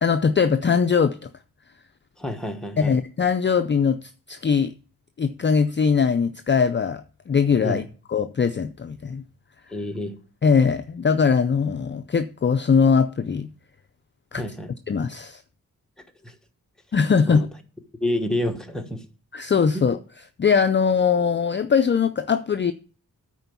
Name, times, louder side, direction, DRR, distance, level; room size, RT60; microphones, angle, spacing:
voice 1, 0.0-1.3 2.8-4.7 5.2-7.8 8.1-9.2 10.4-13.5 14.3-14.4 14.9-15.4 16.9-17.5 19.3-20.0 20.4-22.7, left 6 dB, 35° left, 0.4 m, -21 dB
voice 2, 2.2-3.0 7.6-7.8 9.7-10.2 14.3-14.7 16.2-16.3 17.3-17.4 18.0-19.0 19.7-19.8, left 1 dB, ahead, 1.2 m, -28 dB
9.9 x 4.4 x 6.9 m
wide cardioid pair, 115°, 34 cm